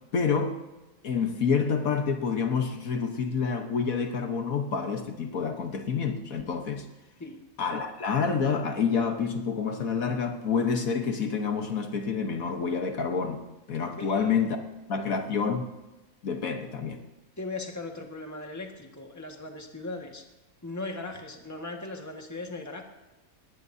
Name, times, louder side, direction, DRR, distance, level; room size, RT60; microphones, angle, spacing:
voice 1, 0.1-0.6 1.0-6.8 7.6-13.4 13.7-14.6 14.9-15.6 16.2-17.0, left 5 dB, 70° left, 1.6 m, -28 dB
voice 2, 14.0-14.5 14.9-15.1 17.4-20.2 20.6-22.8, left 2 dB, 10° left, 1.6 m, -38 dB
20.0 x 19.0 x 2.8 m
omnidirectional pair, 1.5 m